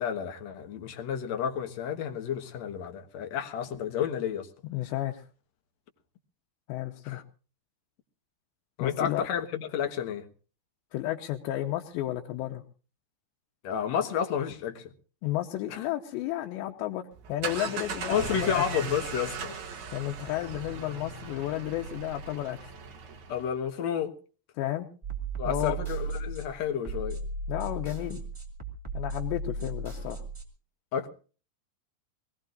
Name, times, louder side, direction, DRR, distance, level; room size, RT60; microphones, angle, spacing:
voice 1, 0.0-4.5 7.0-7.2 8.8-10.3 13.6-14.9 15.7-15.9 18.1-19.5 23.3-24.1 25.4-27.2 30.9-31.1, left 8 dB, 65° left, 1.7 m, -31 dB
voice 2, 4.6-5.2 6.7-7.2 8.8-9.3 10.9-12.6 15.2-18.9 19.9-22.7 24.6-24.9 25.5-25.8 27.5-28.2 28.9-30.2, left 14 dB, 85° left, 3.2 m, -32 dB
sound 1, 17.1-23.5, right 5 dB, 50° right, 3.0 m, -38 dB
sound 2, 25.0-30.4, right 2 dB, 10° right, 1.3 m, -35 dB
24.0 x 19.0 x 2.5 m
omnidirectional pair, 5.0 m